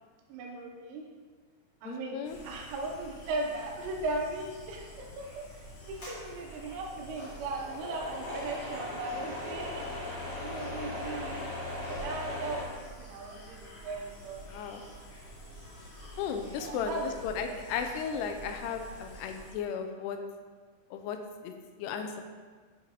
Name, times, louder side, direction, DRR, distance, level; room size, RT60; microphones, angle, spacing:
voice 1, 0.3-1.1 1.8-11.5 11.9-14.4 16.6-17.2 17.4-17.6, right 2 dB, 80° right, 0 dB, 3.0 m, -38 dB
voice 2, 1.9-2.4 14.5-14.8 16.2-20.2 20.9-21.2 21.4-21.5 21.8-22.2, left 7 dB, 80° left, 5 dB, 2.6 m, -35 dB
sound 1, 2.2-19.5, right 1 dB, 55° left, 3.2 m, -49 dB
sound 2, 6.0-12.6, left 2 dB, 35° left, 2.0 m, -39 dB
8.7 x 4.5 x 4.0 m, 1.5 s
omnidirectional pair, 4.9 m